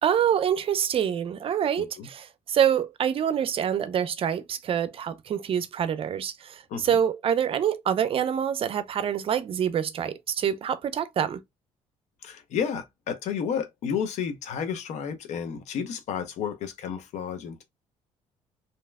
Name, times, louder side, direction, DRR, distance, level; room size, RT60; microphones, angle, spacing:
voice 1, 0.0-11.4, right 9 dB, 50° right, 0.5 m, -26 dB
voice 2, 1.8-2.1 6.7-7.0 12.2-17.6, left 7 dB, 70° left, 0.8 m, -31 dB
3.1 x 2.8 x 2.2 m
supercardioid pair, 75°, 12 cm